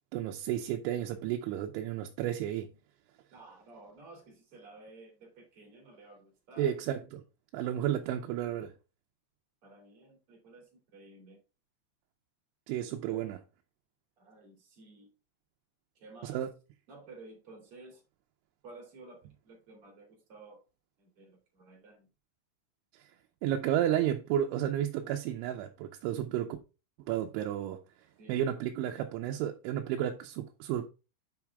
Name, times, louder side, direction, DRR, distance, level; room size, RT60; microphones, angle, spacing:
voice 1, 0.1-2.7 6.6-7.2 7.5-8.7 12.7-13.4 16.2-16.5 23.4-26.6 27.1-27.8 28.3-30.9, right 11 dB, 85° right, 3.1 m, -32 dB
voice 2, 3.3-6.8 9.6-11.4 13.1-13.3 14.2-15.1 15.9-16.4 16.9-18.0 18.6-20.6 21.0-22.1 28.2-28.4, right 2 dB, 35° right, 3.0 m, -53 dB
8.1 x 5.9 x 3.5 m
omnidirectional pair, 5.4 m